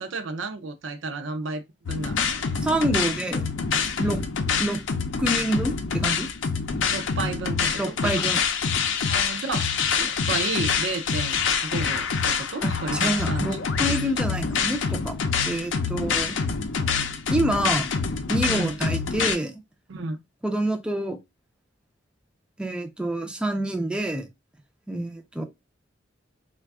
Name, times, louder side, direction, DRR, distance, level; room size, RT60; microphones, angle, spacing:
voice 1, 0.0-2.4 4.0-4.3 6.9-8.3 9.0-13.5 18.5-18.7 19.9-20.2, right 3 dB, 70° right, 0.5 m, -32 dB
sound 1, 1.9-19.4, left 5 dB, 70° left, 0.5 m, -26 dB
voice 2, 2.6-3.5 4.0-4.2 4.6-4.8 5.2-6.3 7.7-8.4 12.6-15.2 15.5-16.4 17.3-17.9 18.3-19.6 20.4-21.2 22.6-24.3 24.9-25.4, right 1 dB, 5° right, 0.4 m, -27 dB
3.3 x 2.2 x 3.4 m
head